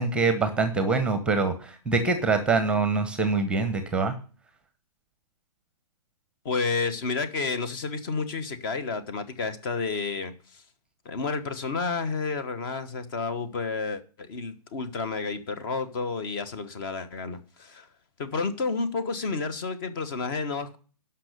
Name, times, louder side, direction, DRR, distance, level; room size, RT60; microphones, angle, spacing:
voice 1, 0.0-4.1, right 4 dB, 5° right, 1.0 m, -24 dB
voice 2, 6.4-10.6 11.0-17.9 18.2-20.8, left 4 dB, 35° left, 1.2 m, -30 dB
12.0 x 5.7 x 6.7 m
figure-of-eight pair, 130°, 20 cm